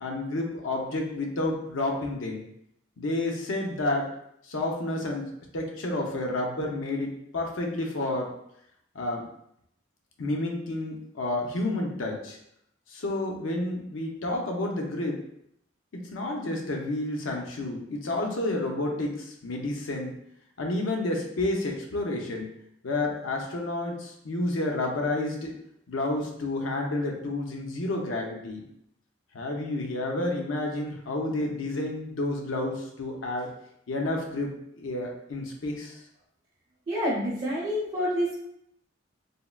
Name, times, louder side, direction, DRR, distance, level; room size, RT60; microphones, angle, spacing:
voice 1, 0.0-2.4 3.0-4.1 4.5-8.3 8.9-9.2 10.2-12.4 12.9-15.2 15.9-20.1 20.6-22.5 22.8-25.5 25.9-28.6 29.3-33.5 33.9-36.0, left 2 dB, 75° left, 1 dB, 0.6 m, -30 dB
voice 2, 36.9-38.4, equal, 30° right, -6 dB, 0.6 m, -28 dB
3.6 x 2.1 x 2.2 m, 0.74 s
head